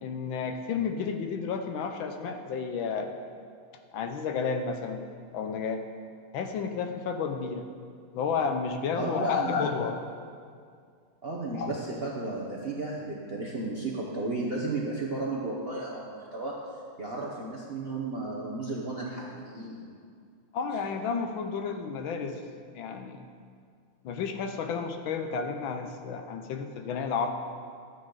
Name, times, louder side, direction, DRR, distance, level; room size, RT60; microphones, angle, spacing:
voice 1, 0.0-3.1 3.9-5.0 5.3-5.8 6.3-7.7 8.1-10.0 11.5-11.7 20.5-22.4 22.7-23.2 24.0-27.3, left 5 dB, 75° left, 6 dB, 1.4 m, -31 dB
voice 2, 8.9-9.7 11.2-16.7 17.0-19.9, right 2 dB, 50° right, -4 dB, 0.7 m, -34 dB
12.5 x 8.9 x 3.9 m, 2.2 s
omnidirectional pair, 2.3 m